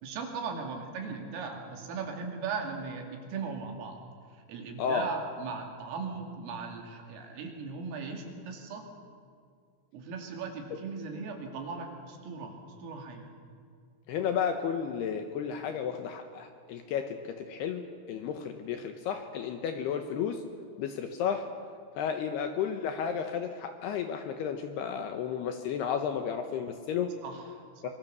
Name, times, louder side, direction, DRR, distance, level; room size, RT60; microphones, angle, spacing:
voice 1, 0.0-4.0 4.3-8.9 9.9-13.3 27.2-27.9, right 5 dB, 90° right, 3 dB, 5.1 m, -38 dB
voice 2, 4.8-5.1 14.1-20.4 20.8-21.5 22.0-27.1 27.8-27.9, left 7 dB, 75° left, 7 dB, 2.5 m, -32 dB
24.5 x 23.0 x 6.8 m, 2.2 s
omnidirectional pair, 5.7 m